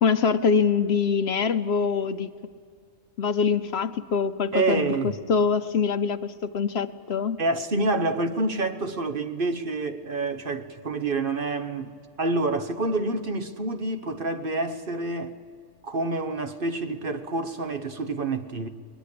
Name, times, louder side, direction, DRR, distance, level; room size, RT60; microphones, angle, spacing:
voice 1, 0.0-2.3 3.2-5.0 5.3-7.4, left 6 dB, 60° left, 0.9 m, -24 dB
voice 2, 4.5-5.1 7.4-11.9 12.2-15.3 15.8-18.7, right 3 dB, 45° right, 1.2 m, -27 dB
22.0 x 21.0 x 8.5 m
omnidirectional pair, 1.3 m